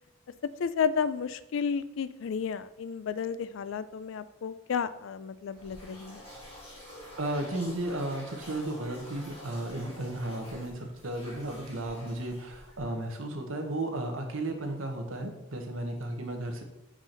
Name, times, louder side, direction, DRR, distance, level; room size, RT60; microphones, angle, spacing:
voice 1, 0.6-6.2, left 6 dB, 65° left, 15 dB, 0.3 m, -32 dB
sound 1, 5.5-13.1, equal, 25° left, 1.9 m, -48 dB
voice 2, 7.2-16.6, right 1 dB, 70° right, 4 dB, 1.0 m, -34 dB
6.0 x 4.8 x 3.9 m, 0.91 s
head